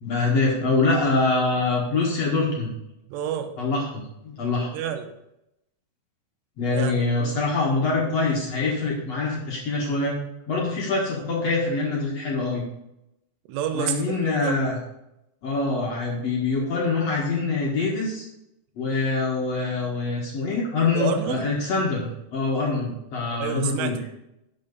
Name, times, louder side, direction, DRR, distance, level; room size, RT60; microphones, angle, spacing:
voice 1, 0.0-2.7 3.6-4.7 6.6-10.2 10.5-12.6 13.7-14.8 15.4-18.2 18.8-24.0, left 3 dB, 70° left, -3 dB, 1.6 m, -24 dB
voice 2, 3.1-3.6 4.7-5.1 6.7-7.4 13.5-14.6 20.9-21.5 23.3-24.1, right 8 dB, 85° right, 6 dB, 3.4 m, -29 dB
11.5 x 6.8 x 4.0 m, 0.85 s
omnidirectional pair, 5.6 m